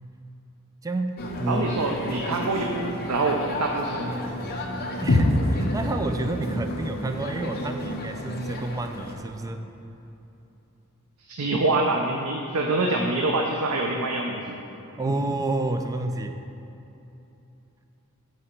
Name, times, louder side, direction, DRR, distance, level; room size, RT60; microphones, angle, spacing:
voice 1, 0.8-1.8 2.4-2.5 5.0-9.6 15.0-16.3, right 2 dB, 15° right, 6 dB, 0.3 m, -29 dB
sound 1, 1.2-9.2, left 1 dB, 45° left, 0.7 m, -33 dB
voice 2, 1.5-4.2 11.2-14.6 15.1-15.2, right 2 dB, 85° right, 1 dB, 0.5 m, -25 dB
sound 2, 5.1-9.1, left 2 dB, 80° left, 0.7 m, -28 dB
8.9 x 4.2 x 4.4 m, 2.9 s
head